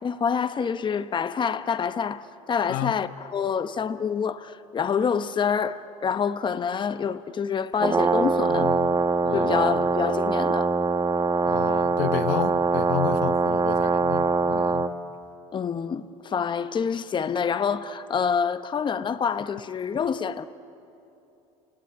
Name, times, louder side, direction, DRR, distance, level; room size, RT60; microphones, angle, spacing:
voice 1, 0.0-8.7 9.3-10.7 15.5-20.4, left 6 dB, 30° left, 1.0 m, -27 dB
Brass instrument, 7.7-14.9, right 4 dB, 25° right, 1.3 m, -23 dB
voice 2, 8.5-8.9 9.2-9.9 11.5-14.9, left 14 dB, 80° left, 0.9 m, -32 dB
30.0 x 17.5 x 10.0 m
supercardioid pair, 95°, 15 cm